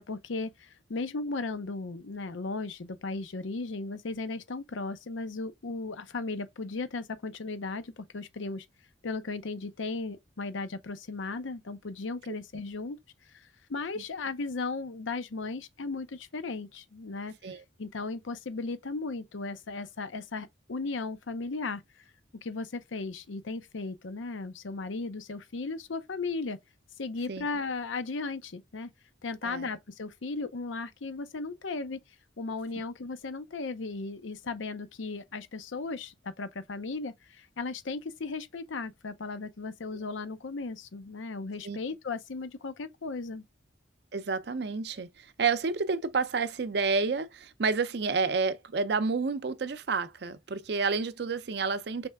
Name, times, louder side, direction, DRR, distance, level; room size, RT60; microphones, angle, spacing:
voice 1, 0.0-8.7 9.0-13.0 13.3-17.3 17.8-21.8 22.4-26.6 27.0-28.9 29.2-32.0 32.4-43.4, left 3 dB, 85° left, 0.6 m, -36 dB
voice 2, 44.1-52.1, right 4 dB, 55° right, 0.5 m, -30 dB
4.3 x 3.2 x 3.4 m
head